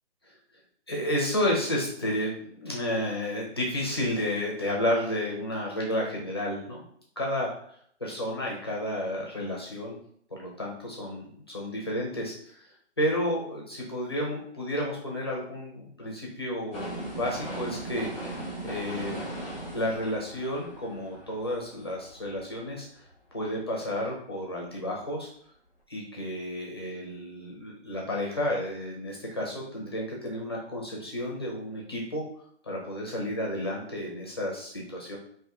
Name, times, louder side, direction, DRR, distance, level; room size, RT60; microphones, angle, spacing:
voice 1, 0.9-6.8 7.2-7.5 8.0-10.0 10.3-12.6 13.0-18.1 18.6-19.1 19.7-22.9 23.3-25.3 25.9-32.2 32.6-35.2, left 1 dB, 20° left, -2 dB, 0.5 m, -31 dB
sound 1, 16.7-22.7 23.1-23.2, right 1 dB, 5° right, 0.8 m, -39 dB
3.8 x 2.6 x 3.5 m, 0.64 s
hypercardioid pair, 160°, 36 cm